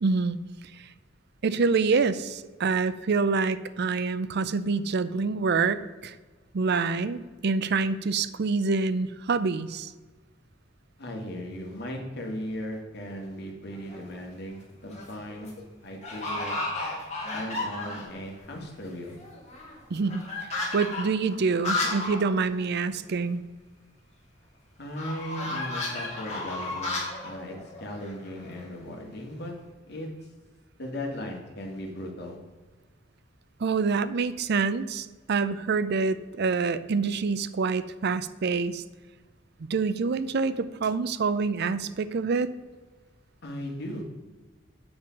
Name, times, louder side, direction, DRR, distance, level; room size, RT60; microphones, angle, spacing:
voice 1, 0.0-0.4 0.7-0.9 1.4-6.2 6.5-9.9 19.9-20.2 20.7-23.4 33.6-38.8 39.6-42.5, right 4 dB, 60° right, 14 dB, 0.5 m, -26 dB
voice 2, 11.0-15.5 15.8-16.6 17.3-19.2 24.8-27.0 27.2-29.5 29.9-30.1 30.8-32.4 43.4-44.0, left 1 dB, 60° left, 1 dB, 2.1 m, -37 dB
sound 1, 13.7-14.2 14.7-15.2 15.4-15.5 16.0-18.2 18.6-18.7 18.9-22.2 22.5-22.6 22.9-23.0 24.9-28.7, left 2 dB, 35° left, 2.7 m, -33 dB
7.9 x 7.1 x 5.2 m, 1.3 s
head